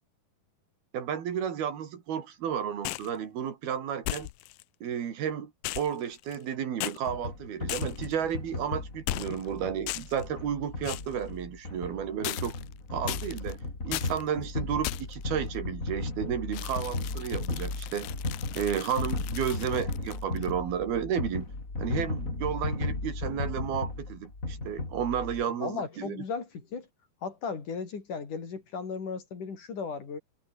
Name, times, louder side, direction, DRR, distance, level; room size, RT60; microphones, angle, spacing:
voice 1, 0.9-4.3 4.8-5.5 5.8-12.6 12.9-13.6 13.8-18.1 18.5-21.5 21.8-26.2, right 8 dB, 75° right, 4.6 m, -32 dB
sound 1, 2.8-3.2 4.0-4.6 5.6-6.5 6.8-7.0 7.7-8.1 9.1-9.5 9.9-10.2 10.8-11.1 12.2-12.7 13.1-13.5 13.9-14.2 14.8-15.2 16.5-20.5, left 19 dB, 80° left, 2.0 m, -37 dB
sound 2, 7.1-25.4, left 2 dB, 20° left, 4.6 m, -35 dB
voice 2, 25.6-26.9 27.2-30.2, left 5 dB, 55° left, 5.4 m, -36 dB
omnidirectional pair, 4.5 m